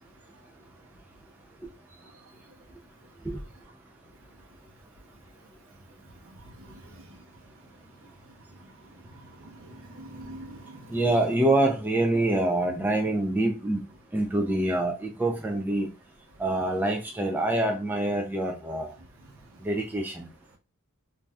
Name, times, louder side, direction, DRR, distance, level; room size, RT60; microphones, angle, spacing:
voice 1, 6.4-7.2 9.0-11.1, right 1 dB, 65° right, 0.8 m, -45 dB
voice 2, 10.9-13.8 14.1-15.9 16.4-18.9 19.6-20.3, right 1 dB, 10° right, 0.3 m, -26 dB
2.5 x 2.2 x 3.3 m
head